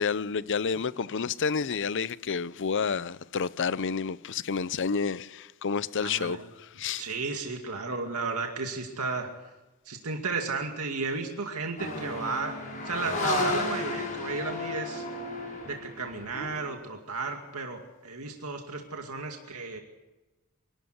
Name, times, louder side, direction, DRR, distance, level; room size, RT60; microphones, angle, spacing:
voice 1, 0.0-6.4 6.8-7.0, left 5 dB, 55° left, 0.6 m, -29 dB
voice 2, 6.0-6.4 7.0-9.3 9.9-12.6 12.8-15.1 15.7-19.8, right 4 dB, 75° right, 2.3 m, -33 dB
sound 1, 11.8-16.7, left 2 dB, 40° left, 6.5 m, -33 dB
27.0 x 13.0 x 8.0 m
head